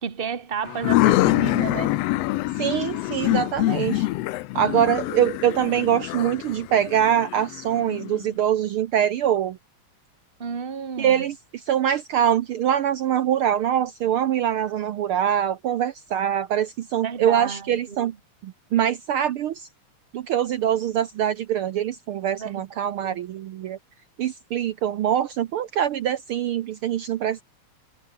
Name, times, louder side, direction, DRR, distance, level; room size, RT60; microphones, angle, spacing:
voice 1, 0.0-2.0 10.4-11.2 17.0-18.1 22.4-23.2, right 6 dB, 45° right, 0.7 m, -32 dB
sound 1, 0.7-8.2, left 17 dB, 75° left, 1.5 m, -25 dB
voice 2, 2.6-4.1 4.5-9.6 11.0-18.1 18.4-19.7 20.1-23.8 24.2-27.4, right 10 dB, 75° right, 1.3 m, -24 dB
omnidirectional pair, 3.3 m